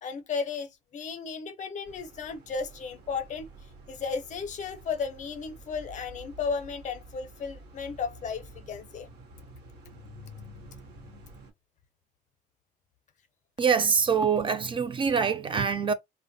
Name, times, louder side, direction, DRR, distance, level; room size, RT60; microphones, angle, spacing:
voice 1, 0.0-3.5 3.9-9.1, left 5 dB, 45° left, 0.6 m, -34 dB
sound 1, 1.9-11.5, right 1 dB, 75° right, 0.8 m, -49 dB
voice 2, 13.6-15.9, right 6 dB, 30° right, 0.3 m, -24 dB
3.2 x 2.1 x 2.6 m
cardioid pair, 110°, 17 cm